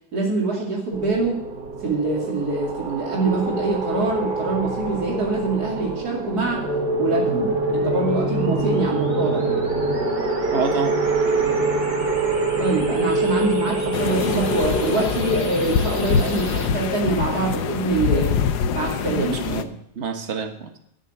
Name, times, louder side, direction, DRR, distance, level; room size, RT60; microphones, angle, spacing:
voice 1, 0.1-1.4 1.8-6.7 7.0-9.6 12.6-18.4 18.7-19.4, right 3 dB, 70° right, -2 dB, 3.1 m, -24 dB
sound 1, 0.9-15.1, right 4 dB, 85° right, 2.6 m, -25 dB
sound 2, 6.7-16.7, left 2 dB, 25° right, 3.1 m, -30 dB
voice 2, 10.5-11.0 19.2-20.8, right 5 dB, 45° right, 6 dB, 1.6 m, -28 dB
sound 3, 13.9-19.6, left 7 dB, 80° left, 1.4 m, -24 dB
13.0 x 7.0 x 9.0 m, 0.73 s
omnidirectional pair, 1.7 m